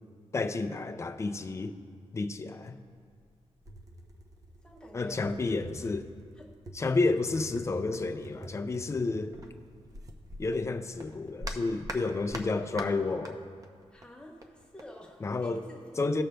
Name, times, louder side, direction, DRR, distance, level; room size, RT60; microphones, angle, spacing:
voice 1, 0.3-1.7 2.1-2.8 4.9-6.1 6.7-9.3 10.4-13.4 15.2-15.6 16.0-16.2, left 3 dB, 25° left, 8 dB, 0.4 m, -30 dB
sound 1, 2.8-2.9 3.2-10.6 11.0-13.3 13.6-14.8, equal, 30° right, 0.7 m, -44 dB
voice 2, 4.6-5.3 5.8-5.9 6.3-6.5 13.9-16.0, equal, 10° left, -3 dB, 1.3 m, -49 dB
19.0 x 6.5 x 2.2 m, 2.1 s
wide cardioid pair, 135°, 11 cm